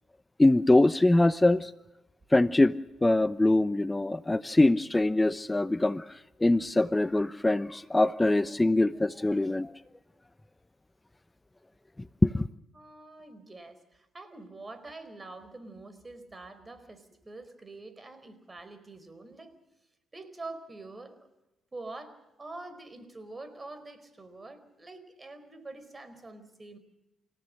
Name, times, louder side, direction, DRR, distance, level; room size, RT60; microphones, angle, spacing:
voice 1, 0.4-1.7 2.3-6.0 6.4-9.7 12.2-12.4, left 2 dB, 15° left, 0.9 m, -23 dB
voice 2, 12.7-19.5 20.1-21.3 21.7-26.8, right 2 dB, 25° right, 4.6 m, -45 dB
29.0 x 17.0 x 6.6 m
hypercardioid pair, 55°, 0 cm